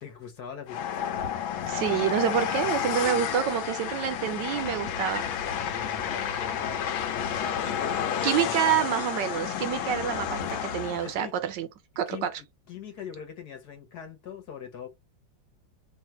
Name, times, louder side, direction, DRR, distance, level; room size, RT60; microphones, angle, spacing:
voice 1, 0.0-1.1 5.7-8.8 11.0-11.3 12.1-12.3 12.7-14.9, left 7 dB, 60° left, 1.4 m, -42 dB
Train, 0.7-11.2, left 8 dB, 85° left, 1.4 m, -31 dB
voice 2, 1.7-5.2 8.2-11.7 12.0-12.3, right 10 dB, 75° right, 1.1 m, -27 dB
3.3 x 2.4 x 4.2 m
omnidirectional pair, 2.1 m